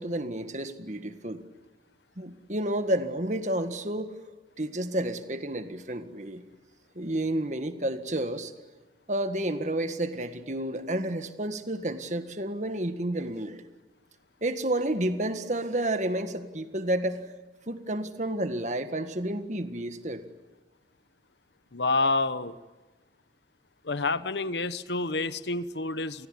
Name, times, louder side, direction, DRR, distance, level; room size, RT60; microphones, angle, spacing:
voice 1, 0.0-1.4 2.2-4.1 4.6-6.4 7.0-8.5 9.1-13.6 14.4-17.4 17.7-20.2, right 1 dB, 40° right, 9 dB, 1.8 m, -30 dB
voice 2, 21.7-22.6 23.8-26.3, left 3 dB, 70° left, 14 dB, 1.1 m, -28 dB
29.0 x 20.0 x 9.9 m, 1.2 s
head